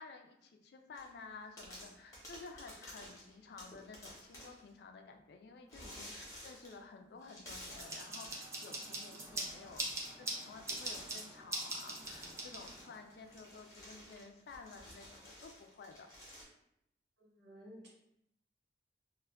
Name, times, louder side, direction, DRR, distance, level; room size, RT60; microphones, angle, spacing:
voice 1, 0.0-9.9 10.2-16.1, left 4 dB, 65° left, 4 dB, 0.3 m, -53 dB
sound 1, 0.9-1.2 1.6-4.7 5.7-6.8 7.2-8.5 9.2-10.2 10.5-16.4, equal, 20° left, 0.7 m, -53 dB
sound 2, 7.8-13.0, right 2 dB, 15° right, 0.3 m, -42 dB
voice 2, 17.2-17.9, equal, 75° right, -4 dB, 0.8 m, -54 dB
2.2 x 2.1 x 3.3 m, 0.80 s
head